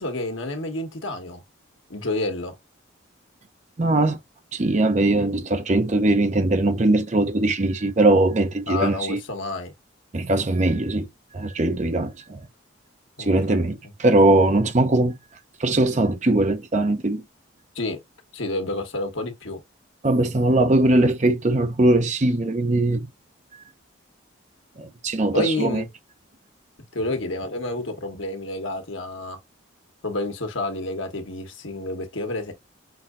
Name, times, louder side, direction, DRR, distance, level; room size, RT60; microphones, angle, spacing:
voice 1, 0.0-1.4 1.9-2.5 8.7-9.7 13.2-13.7 17.7-18.0 18.3-19.6 25.3-25.9 26.9-29.4 30.0-32.5, left 2 dB, 70° left, 1.3 m, -29 dB
voice 2, 3.8-4.2 4.5-9.2 10.1-11.1 11.3-12.4 13.2-15.1 15.6-17.2 20.0-23.1 24.8-25.8, right 2 dB, 35° right, 0.6 m, -20 dB
5.9 x 2.7 x 2.4 m
head